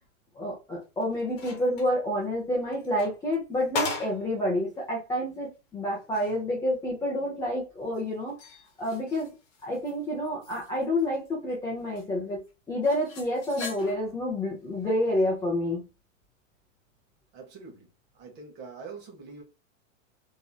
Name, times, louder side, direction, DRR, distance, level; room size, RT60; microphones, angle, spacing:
voice 1, 0.3-8.4 8.8-9.3 9.6-12.4 12.7-15.8, left 1 dB, 10° left, 0.6 m, -29 dB
sound 1, 0.8-2.0 2.7-4.3 4.8-4.9 5.4-5.5 5.9-6.4 7.9-9.9 10.2-11.5 11.9-12.0 12.8-14.2 15.0-15.3, left 4 dB, 40° left, 1.1 m, -39 dB
voice 2, 17.3-17.9 18.2-19.4, right 5 dB, 25° right, 1.0 m, -44 dB
3.0 x 2.7 x 2.2 m
hypercardioid pair, 145°, 40 cm